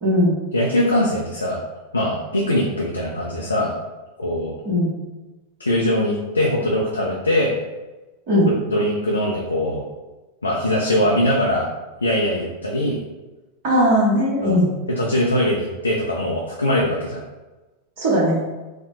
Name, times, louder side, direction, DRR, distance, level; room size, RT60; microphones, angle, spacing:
voice 1, 0.0-0.4 4.6-4.9 8.3-8.5 13.6-14.7 18.0-18.4, equal, 45° right, -5 dB, 1.1 m, -18 dB
voice 2, 0.5-1.6 1.9-3.7 4.2-4.5 5.6-7.5 8.7-9.8 10.4-11.7 12.0-13.0 14.4-14.6 14.9-17.2, left 1 dB, 80° left, -2 dB, 0.5 m, -21 dB
4.1 x 2.1 x 3.0 m, 1.1 s
figure-of-eight pair, 90°, 0 cm